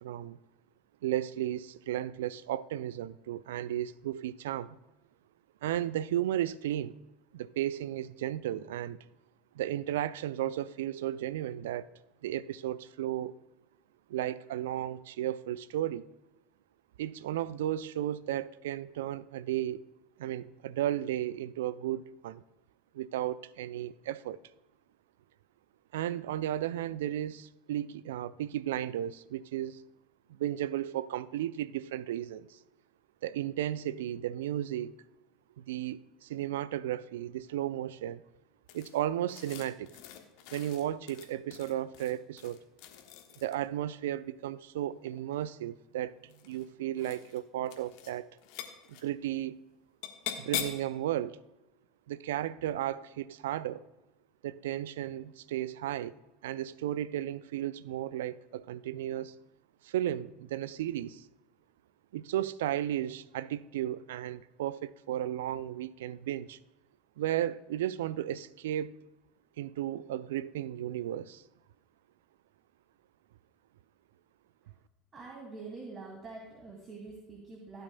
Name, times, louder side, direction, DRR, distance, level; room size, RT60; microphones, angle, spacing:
voice 1, 0.0-0.4 1.0-4.8 5.6-7.0 7.3-9.0 9.6-11.9 12.2-13.3 14.1-16.0 17.0-19.8 20.2-22.4 22.9-24.4 25.9-29.8 30.3-32.6 33.2-34.9 35.6-38.2 38.7-40.0 40.5-42.6 43.4-48.3 48.9-49.5 50.4-51.4 52.1-53.8 54.4-56.2 56.4-59.3 59.8-61.3 62.1-66.6 67.2-68.9 69.6-71.4, right 12 dB, 70° right, 0.4 m, -34 dB
sound 1, 38.7-43.7 44.9-45.6 46.2-46.7 47.0-47.4 47.6-48.1 48.4-49.0 50.0-50.9, left 10 dB, 60° left, 1.3 m, -42 dB
voice 2, 75.1-77.8, right 3 dB, 30° right, 2.3 m, -45 dB
16.0 x 9.0 x 2.2 m
figure-of-eight pair, 75°, 0 cm